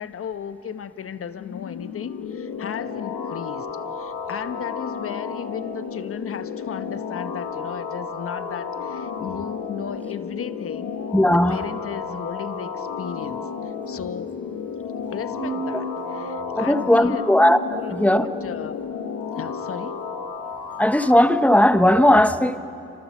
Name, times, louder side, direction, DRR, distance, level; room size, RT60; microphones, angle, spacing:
voice 1, 0.0-3.7 3.9-14.4 15.1-17.2 17.8-18.8 19.3-20.0, left 8 dB, 50° left, 11 dB, 1.1 m, -35 dB
sound 1, 1.4-21.3, left 6 dB, 90° left, 2.1 m, -32 dB
voice 2, 11.1-11.6 16.6-18.3 20.8-22.6, left 1 dB, 5° left, 11 dB, 1.0 m, -17 dB
sound 2, 15.0-18.5, right 2 dB, 50° right, 4.3 m, -35 dB
29.5 x 26.0 x 7.2 m, 2.8 s
cardioid pair, 90°, 30 cm